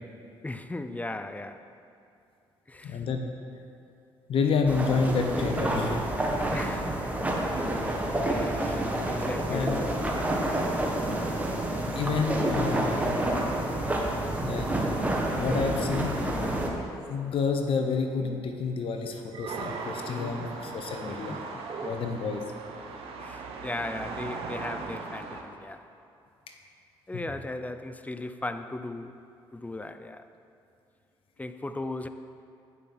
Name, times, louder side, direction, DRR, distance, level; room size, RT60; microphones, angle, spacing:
voice 1, 0.4-1.7 2.7-3.0 6.5-7.1 8.2-9.9 20.1-20.6 21.1-21.6 23.2-25.8 27.1-29.1 29.5-30.3 31.4-32.1, left 2 dB, 15° left, 10 dB, 0.5 m, -37 dB
voice 2, 2.8-3.3 4.3-6.0 9.5-9.8 11.9-13.2 14.4-14.7 15.4-16.6 17.1-21.4 21.8-22.4 27.1-27.2, left 5 dB, 65° left, 4 dB, 0.9 m, -29 dB
sound 1, 4.7-16.7, right 1 dB, 15° right, 1.4 m, -28 dB
sound 2, 18.1-18.6 19.3-20.1 21.6-22.2, right 5 dB, 45° right, 0.6 m, -41 dB
sound 3, 19.5-25.4, right 4 dB, 70° right, 0.9 m, -39 dB
8.6 x 5.4 x 6.0 m, 2.6 s
supercardioid pair, 65°, 10 cm